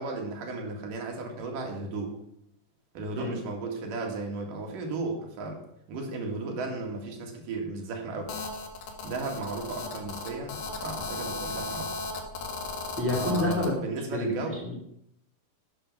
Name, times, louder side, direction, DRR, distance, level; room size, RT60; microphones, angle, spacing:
voice 1, 0.0-2.2 3.0-5.6 5.9-8.3 9.0-11.9 13.1-14.6, right 3 dB, 75° right, 1 dB, 3.6 m, -35 dB
Telephone, 8.3-13.7, left 3 dB, 90° left, 3.3 m, -36 dB
voice 2, 13.0-14.8, left 1 dB, 5° right, -1 dB, 2.1 m, -29 dB
11.5 x 9.1 x 5.5 m, 0.77 s
omnidirectional pair, 3.9 m